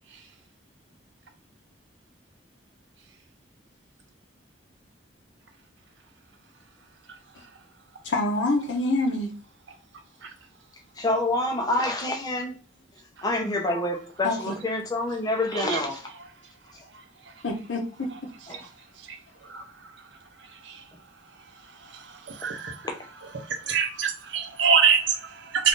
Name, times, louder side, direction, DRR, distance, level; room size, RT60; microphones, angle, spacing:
voice 1, 8.0-9.3 14.2-14.5 17.4-18.1, left 2 dB, 75° left, 0.6 m, -26 dB
voice 2, 11.0-12.5 13.2-16.0 18.5-18.6, left 1 dB, 20° left, 0.7 m, -27 dB
voice 3, 19.0-19.9 20.4-20.8 21.6-22.9 23.3-25.7, right 6 dB, 70° right, 0.7 m, -26 dB
2.6 x 2.5 x 3.6 m
head